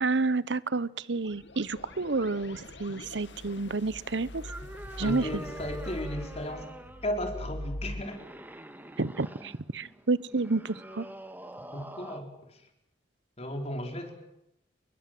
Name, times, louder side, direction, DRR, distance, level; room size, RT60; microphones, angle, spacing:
voice 1, 0.0-4.4 5.0-5.3 9.0-11.1, right 3 dB, 80° right, 19 dB, 1.0 m, -30 dB
sound 1, 1.1-8.0, left 1 dB, 80° left, 2.3 m, -42 dB
sound 2, 1.8-12.2, right 1 dB, 10° right, 1.8 m, -47 dB
voice 2, 5.0-6.7 7.0-8.3 11.7-12.6 13.4-14.1, left 1 dB, 35° left, 4 dB, 4.4 m, -35 dB
30.0 x 22.0 x 7.8 m, 0.81 s
head